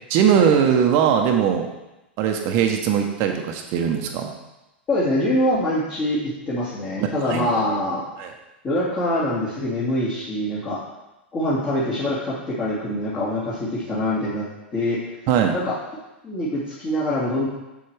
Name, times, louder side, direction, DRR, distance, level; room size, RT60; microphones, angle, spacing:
voice 1, 0.1-1.7 2.2-4.3 7.0-7.5 8.2-8.3 15.3-15.5, right 8 dB, 45° right, 4 dB, 0.9 m, -20 dB
voice 2, 4.9-6.2 6.5-8.0 8.6-10.8 11.3-14.5 14.7-15.0 15.5-15.7 16.2-17.5, left 1 dB, 30° left, -9 dB, 2.2 m, -24 dB
7.3 x 6.9 x 3.4 m, 1.0 s
figure-of-eight pair, 95°, 6 cm